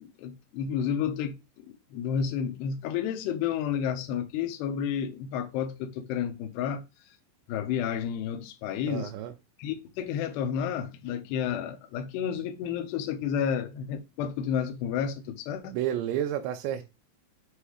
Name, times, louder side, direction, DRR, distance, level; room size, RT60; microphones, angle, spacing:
voice 1, 0.0-6.8 7.5-9.1 9.6-15.7, left 8 dB, 75° left, 2.8 m, -31 dB
voice 2, 8.9-9.3 15.6-16.9, right 11 dB, 85° right, 2.8 m, -31 dB
8.0 x 2.8 x 4.9 m
omnidirectional pair, 5.0 m